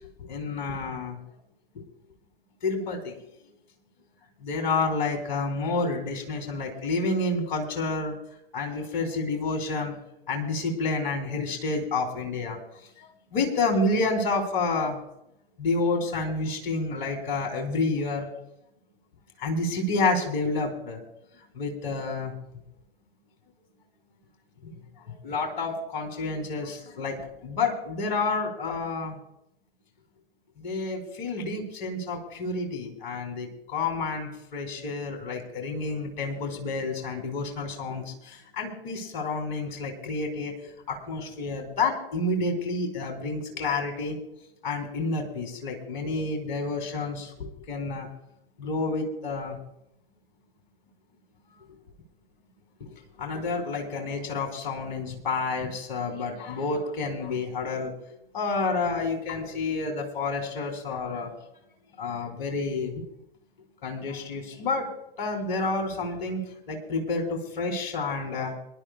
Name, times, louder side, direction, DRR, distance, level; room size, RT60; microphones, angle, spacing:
voice 1, 0.2-1.2 1.7-1.8 2.6-3.2 4.4-8.1 8.5-9.9 10.3-12.6 13.0-15.0 15.6-18.3 19.4-21.0 21.5-22.3 24.6-24.8 25.1-29.2 30.6-44.2 44.6-48.1 48.6-49.6 52.8-52.9 53.2-57.9 58.3-61.3 62.0-63.1 63.8-64.9 65.2-68.5, left 3 dB, 55° left, 3 dB, 3.0 m, -29 dB
25.0 x 11.5 x 2.3 m, 0.81 s
figure-of-eight pair, 95°, 29 cm